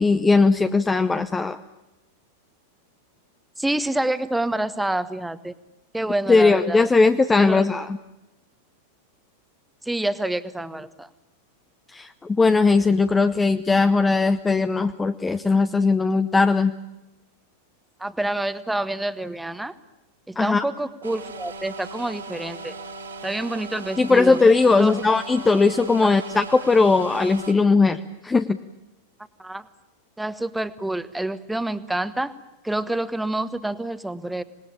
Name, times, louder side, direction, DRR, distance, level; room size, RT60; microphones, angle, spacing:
voice 1, 0.0-1.6 6.3-8.0 11.9-16.7 20.4-20.6 24.0-28.0 28.2-28.6, left 4 dB, 15° left, 10 dB, 0.8 m, -19 dB
voice 2, 3.6-5.5 5.9-6.9 7.4-7.7 9.8-11.1 18.0-19.7 20.3-22.8 23.2-24.4 24.7-25.0 26.0-26.1 29.4-29.7 30.2-32.3 32.6-34.4, right 1 dB, 5° right, 13 dB, 1.3 m, -27 dB
sound 1, 21.0-27.5, right 3 dB, 75° right, 3.9 m, -38 dB
26.0 x 20.5 x 8.7 m, 0.96 s
figure-of-eight pair, 90°, 0 cm